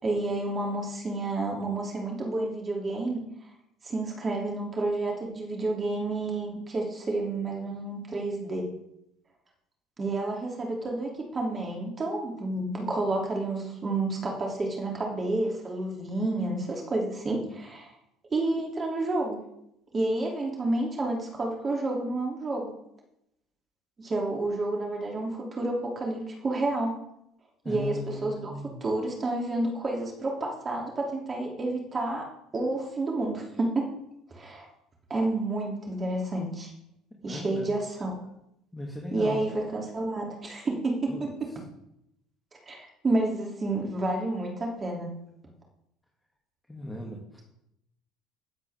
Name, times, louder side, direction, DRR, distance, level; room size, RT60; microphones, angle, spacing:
voice 1, 0.0-3.2 3.8-8.7 10.0-17.9 18.3-19.4 19.9-22.7 24.0-26.9 27.6-28.5 28.8-32.3 32.5-33.9 34.3-34.7 35.1-36.7 37.2-38.2 39.1-41.5 42.7-45.1, right 2 dB, 30° right, 0 dB, 2.9 m, -30 dB
voice 2, 27.6-28.9 37.3-37.8 38.7-39.4 41.1-41.6 46.7-47.4, left 2 dB, 10° left, -2 dB, 2.6 m, -38 dB
18.0 x 8.2 x 3.6 m, 0.79 s
hypercardioid pair, 70°, 0 cm